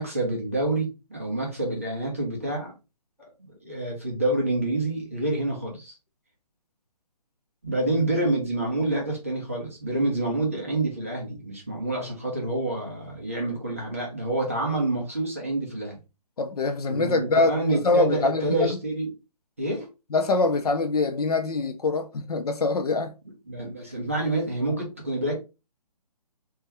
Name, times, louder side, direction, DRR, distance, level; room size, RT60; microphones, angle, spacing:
voice 1, 0.0-2.7 3.6-5.9 7.6-16.0 16.9-19.1 19.6-19.9 23.5-25.4, right 2 dB, 20° right, 0.5 m, -27 dB
voice 2, 16.4-18.8 20.1-23.1, left 3 dB, 65° left, 0.6 m, -24 dB
2.6 x 2.2 x 3.2 m
hypercardioid pair, 180°, 21 cm